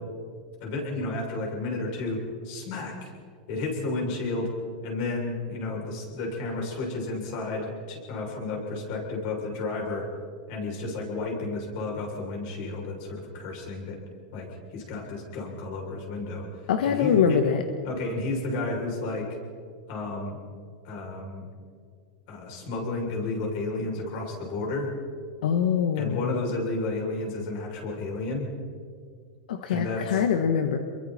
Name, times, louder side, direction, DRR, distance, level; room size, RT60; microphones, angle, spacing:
voice 1, 0.6-3.1 3.5-4.5 4.8-10.1 10.5-14.0 14.3-14.5 14.7-16.5 16.8-17.4 17.8-19.3 19.9-20.4 20.8-21.5 22.3-24.9 26.0-28.5 29.7-30.2, left 2 dB, 50° left, -1 dB, 7.2 m, -32 dB
voice 2, 16.7-17.6 25.4-26.4 29.5-30.8, left 7 dB, 90° left, 6 dB, 1.6 m, -24 dB
29.0 x 23.0 x 4.5 m, 2.1 s
supercardioid pair, 155°, 5 cm